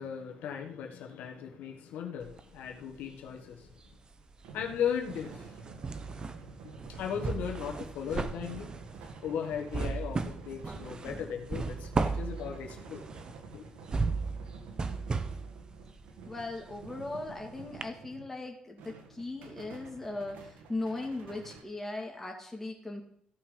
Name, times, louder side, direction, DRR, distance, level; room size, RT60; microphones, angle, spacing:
voice 1, 0.0-3.7 4.5-5.5 6.9-8.7 9.2-13.0 13.5-13.6, left 8 dB, 85° left, 1.5 m, -37 dB
sound 1, 2.2-3.3 3.6-17.4 17.8-17.9, right 4 dB, 30° right, 0.9 m, -36 dB
sound 2, 4.2-18.4 18.8-21.6, right 4 dB, 90° right, 1.7 m, -49 dB
voice 2, 16.3-23.0, left 2 dB, 10° left, 2.9 m, -38 dB
15.0 x 5.6 x 5.2 m
cardioid pair, 95°, 3 cm